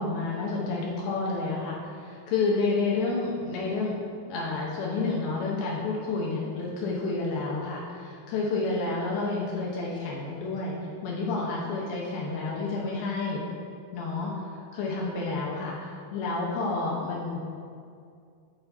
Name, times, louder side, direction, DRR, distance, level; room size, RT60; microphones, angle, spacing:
voice 1, 0.0-4.0 4.3-10.8 11.0-13.4 13.9-17.6, left 3 dB, 80° left, -3 dB, 2.4 m, -30 dB
8.7 x 4.4 x 2.8 m, 2.4 s
omnidirectional pair, 4.5 m